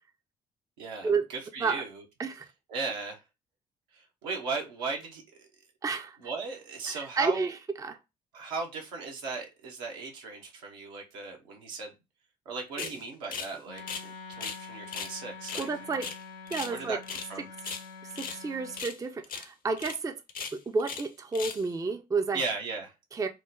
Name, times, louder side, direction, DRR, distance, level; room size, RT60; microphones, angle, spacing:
voice 1, 0.8-2.0 2.7-3.2 3.9-5.5 6.2-7.5 8.3-11.9 12.5-13.8 14.3-15.7 16.7-17.0 17.3-17.5 22.3-22.9, right 4 dB, 75° right, 0.8 m, -37 dB
voice 2, 5.8-6.2 6.9-8.0 12.8-12.9 15.6-16.1 16.5-17.0 18.1-20.2 20.5-22.4 23.1-23.3, right 4 dB, 15° right, 0.4 m, -31 dB
sound 1, 12.8-13.0 13.3-13.5 13.8-14.6 14.9-15.1 15.4-16.8 17.0-17.3 17.6-18.4 18.7-19.0 19.2-19.5 19.8-20.0 20.3-21.1 21.3-21.7, left 6 dB, 40° left, 0.6 m, -38 dB
Wind instrument woodwind instrument, 13.7-18.9, left 5 dB, 90° left, 0.4 m, -46 dB
3.2 x 2.0 x 3.5 m
figure-of-eight pair, 45°, 21 cm